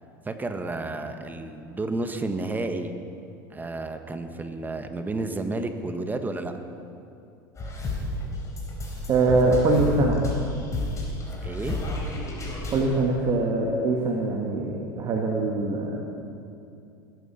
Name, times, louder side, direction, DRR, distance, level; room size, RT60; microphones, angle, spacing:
voice 1, 0.2-2.9 3.5-6.5 11.4-11.7, right 2 dB, 15° right, 7 dB, 1.5 m, -31 dB
sound 1, 7.6-12.8, left 2 dB, 25° left, 4.2 m, -31 dB
voice 2, 9.1-10.2 12.7-16.0, right 2 dB, 40° right, 0 dB, 1.9 m, -23 dB
20.5 x 9.7 x 5.8 m, 2.5 s
hypercardioid pair, 80°, 11 cm